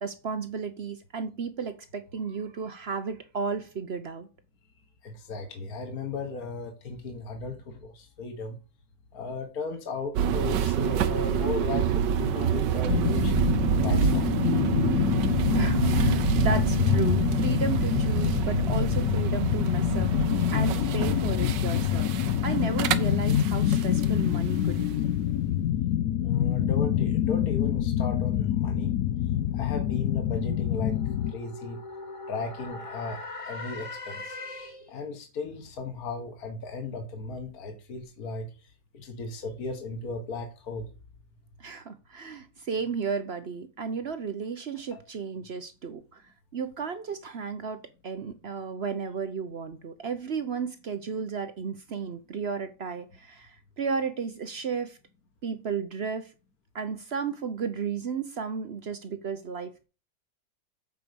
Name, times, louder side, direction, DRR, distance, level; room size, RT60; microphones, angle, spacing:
voice 1, 0.0-4.3 15.5-20.1 20.5-22.1 22.4-25.1 41.6-46.2 46.5-55.0 55.4-56.3 56.7-59.8, right 5 dB, 60° right, 0.7 m, -33 dB
voice 2, 5.0-8.6 9.1-13.3 13.8-14.3 26.2-28.9 29.5-31.0 31.3-31.8 32.3-34.4 34.9-38.5 38.9-40.9 44.9-45.0, left 4 dB, 55° left, 2.0 m, -36 dB
sound 1, 10.1-24.1, right 9 dB, 75° right, 1.3 m, -27 dB
sound 2, 12.9-31.3, left 11 dB, 70° left, 0.9 m, -26 dB
sound 3, 28.9-35.0, left 2 dB, 25° left, 0.9 m, -42 dB
8.0 x 5.0 x 6.9 m
omnidirectional pair, 2.0 m